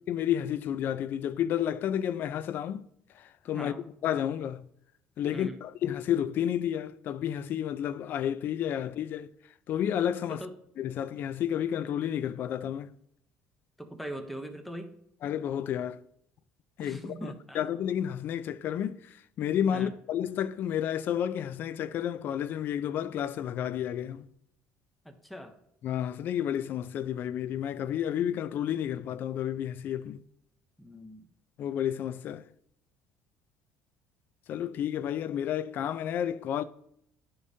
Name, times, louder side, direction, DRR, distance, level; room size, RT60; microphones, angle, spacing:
voice 1, 0.1-2.8 3.1-3.7 4.0-4.7 5.2-9.3 9.7-10.4 10.8-12.9 15.2-16.0 16.8-24.3 25.8-30.2 31.6-32.5 34.5-36.6, left 10 dB, 50° left, 0.4 m, -31 dB
voice 2, 13.8-14.9 16.8-17.6 19.7-19.9 25.0-25.5 30.8-31.3, equal, ahead, 0.7 m, -41 dB
11.0 x 5.0 x 2.7 m
cardioid pair, 135°, 4 cm